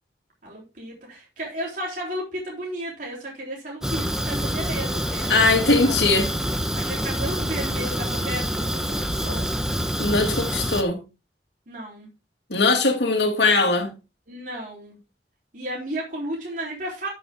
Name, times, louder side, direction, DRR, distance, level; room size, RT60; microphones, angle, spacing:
voice 1, 0.4-5.9 6.8-9.5 11.7-12.1 14.3-15.0 15.5-17.1, right 1 dB, 50° right, 3.5 m, -33 dB
Fire, 3.8-10.8, equal, 5° right, 1.0 m, -26 dB
voice 2, 5.3-6.3 10.0-11.0 12.5-13.9, left 3 dB, 80° left, 2.3 m, -20 dB
12.5 x 6.9 x 3.5 m
head